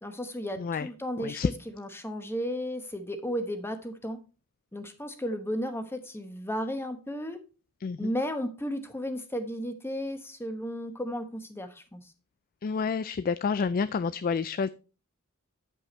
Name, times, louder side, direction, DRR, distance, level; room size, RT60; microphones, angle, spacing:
voice 1, 0.0-4.2 4.7-7.4 8.0-12.0, equal, 10° left, 8 dB, 1.0 m, -34 dB
voice 2, 0.6-0.9 1.2-1.5 7.8-8.1 12.6-14.7, left 5 dB, 40° left, 15 dB, 0.3 m, -29 dB
9.2 x 5.5 x 4.2 m, 0.34 s
head